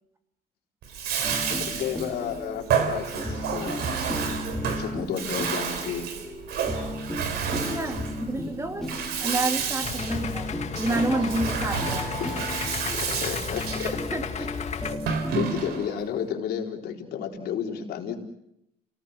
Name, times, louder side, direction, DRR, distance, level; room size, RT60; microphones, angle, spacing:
Bathtub (filling or washing), 0.8-16.0, right 6 dB, 75° right, 3.8 m, -30 dB
sound 1, 1.2-15.9, left 1 dB, 5° left, 3.6 m, -36 dB
voice 1, 1.3-4.0 4.8-6.1 7.7-8.7 12.2-12.4 12.9-14.0 14.4-14.5 14.8-15.0 15.3-18.2, left 8 dB, 75° left, 2 dB, 4.1 m, -33 dB
voice 2, 7.6-8.9 9.2-12.1 13.7-14.5, right 2 dB, 15° right, 6 dB, 2.6 m, -29 dB
Idling, 9.8-14.9, left 7 dB, 40° left, 2.1 m, -34 dB
29.0 x 19.0 x 8.0 m, 0.84 s
cardioid pair, 110°, 17 cm